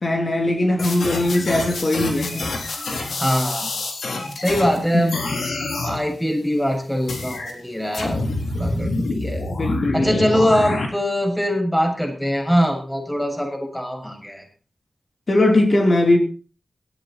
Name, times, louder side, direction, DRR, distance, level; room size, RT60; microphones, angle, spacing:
voice 1, 0.0-2.4 4.9-5.5 9.5-10.1 15.3-16.2, left 1 dB, 50° left, 3.4 m, -20 dB
sound 1, 0.8-4.8 5.1-6.0 7.1-7.5 7.9-10.9, left 2 dB, 85° left, 3.9 m, -27 dB
voice 2, 3.1-3.7 4.4-5.2 5.7-8.2 8.5-9.4 9.9-14.4, equal, 10° left, 6.9 m, -22 dB
18.0 x 13.5 x 4.4 m
wide cardioid pair, 65°, 0 cm